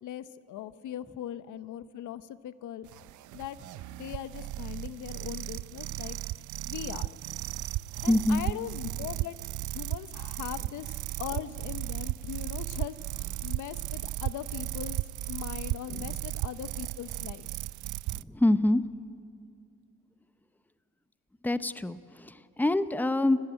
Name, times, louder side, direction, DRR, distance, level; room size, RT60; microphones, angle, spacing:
voice 1, 0.0-3.0 3.3-3.6 3.9-6.2 6.7-7.1 8.0-9.4 9.7-10.9 11.2-15.0 15.3-17.5, left 11 dB, 80° left, 14 dB, 0.9 m, -40 dB
sound 1, 2.8-18.2, right 16 dB, 75° right, 0.5 m, -36 dB
voice 2, 8.1-8.4 15.9-16.0 18.1-18.8 21.4-23.4, left 1 dB, 5° left, 13 dB, 0.8 m, -26 dB
30.0 x 18.0 x 9.0 m, 2.5 s
cardioid pair, 90°, 30 cm